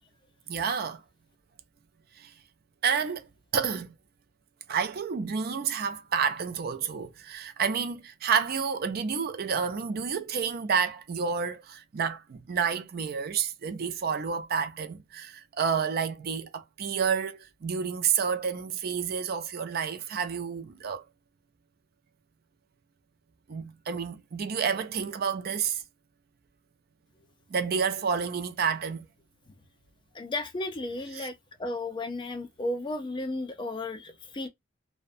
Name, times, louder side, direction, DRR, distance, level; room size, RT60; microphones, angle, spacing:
voice 1, 0.5-1.0 2.2-2.3 2.8-3.3 3.5-3.9 4.7-21.0 23.5-25.8 27.5-29.1 31.1-31.3, right 6 dB, 50° right, 0.4 m, -29 dB
voice 2, 30.1-34.5, left 2 dB, 25° left, 0.4 m, -34 dB
2.5 x 2.1 x 2.5 m
head